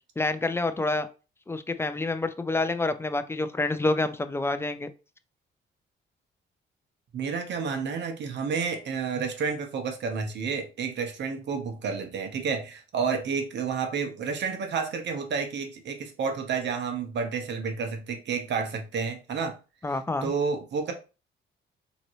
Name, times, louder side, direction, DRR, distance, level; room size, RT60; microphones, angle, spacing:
voice 1, 0.2-1.1 1.5-4.9 19.8-20.3, left 2 dB, 10° left, 0.4 m, -28 dB
voice 2, 7.1-19.6 20.2-20.9, right 5 dB, 60° right, 1.1 m, -30 dB
3.8 x 3.0 x 3.1 m
cardioid pair, 90°, 20 cm